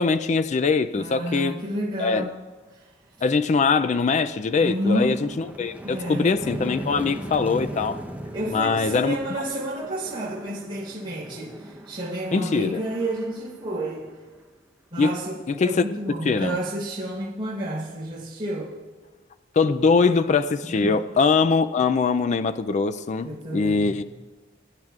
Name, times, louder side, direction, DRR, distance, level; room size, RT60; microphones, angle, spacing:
voice 1, 0.0-1.6 2.0-2.3 3.2-8.0 8.5-9.2 12.3-12.8 15.0-15.1 15.5-15.8 16.2-16.6 19.6-24.0, left 4 dB, 40° left, 11 dB, 0.4 m, -22 dB
voice 2, 0.9-2.3 2.7-2.8 4.6-5.2 5.8-6.3 8.3-14.1 14.9-18.7 20.8-21.0 23.2-24.0, right 1 dB, 30° right, -7 dB, 4.0 m, -30 dB
sound 1, 3.0-3.2 3.6-14.4, right 1 dB, 10° right, 0.8 m, -38 dB
22.5 x 10.5 x 2.4 m, 1.4 s
head